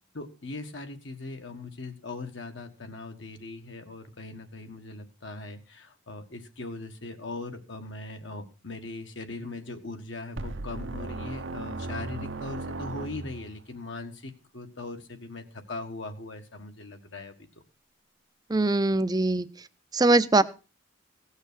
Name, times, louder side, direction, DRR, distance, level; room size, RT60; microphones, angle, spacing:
voice 1, 0.1-17.3, left 2 dB, 70° left, 6 dB, 1.7 m, -40 dB
sound 1, 10.4-13.6, right 2 dB, 70° right, 0.8 m, -36 dB
voice 2, 18.5-19.5 19.9-20.4, right 2 dB, 20° right, 14 dB, 0.5 m, -21 dB
16.5 x 6.6 x 6.2 m, 0.34 s
head